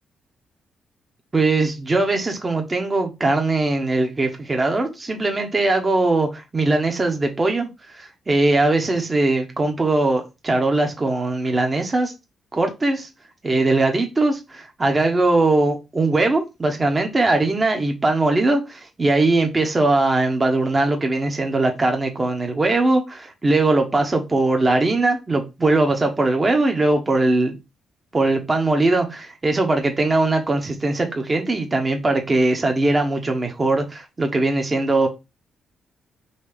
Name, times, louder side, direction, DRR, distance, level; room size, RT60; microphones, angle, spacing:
voice 1, 1.3-12.1 12.5-13.1 13.4-27.6 28.1-35.1, right 2 dB, 30° right, 1.1 m, -20 dB
4.1 x 3.0 x 3.4 m
supercardioid pair, 55°, 0 cm